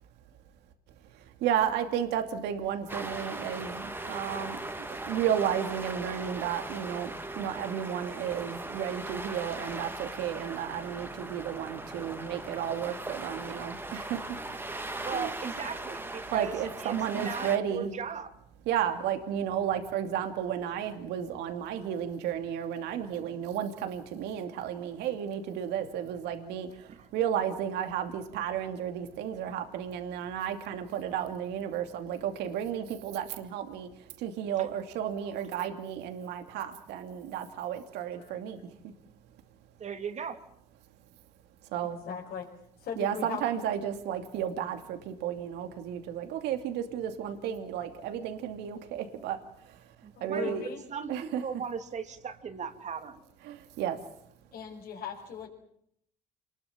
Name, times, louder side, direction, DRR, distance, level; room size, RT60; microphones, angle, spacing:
voice 1, 1.1-7.1 7.4-14.4 15.1-15.3 16.3-17.9 18.7-38.9 41.7-42.0 43.0-49.9 50.2-50.6 51.1-51.4 53.4-54.0, right 9 dB, 85° right, 6 dB, 2.7 m, -33 dB
sound 1, 2.9-17.6, right 2 dB, 10° right, 2.7 m, -39 dB
voice 2, 15.0-16.6 16.8-18.3 26.9-27.0 39.8-40.4 50.0-53.2, right 6 dB, 45° right, 8 dB, 3.0 m, -37 dB
voice 3, 42.1-42.5 42.8-43.6 50.2-50.8 54.5-55.5, left 7 dB, 65° left, -4 dB, 5.7 m, -39 dB
28.0 x 21.0 x 7.4 m, 0.71 s
cardioid pair, 110°, 17 cm